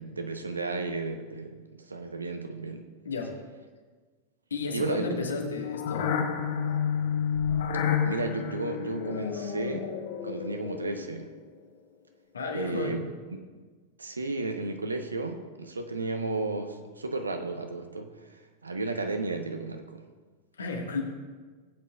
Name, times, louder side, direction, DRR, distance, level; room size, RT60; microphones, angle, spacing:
voice 1, 0.0-2.8 4.7-5.1 8.0-9.9 10.2-11.3 12.5-13.0 14.0-20.1, right 3 dB, 80° right, 6 dB, 0.8 m, -33 dB
voice 2, 3.0-3.4 4.5-6.1 12.3-13.0 20.6-21.0, left 3 dB, 70° left, 1 dB, 1.5 m, -33 dB
sound 1, 4.8-11.2, left 7 dB, 55° left, 0.9 m, -30 dB
17.0 x 8.4 x 2.3 m, 1.4 s
figure-of-eight pair, 90°, 0 cm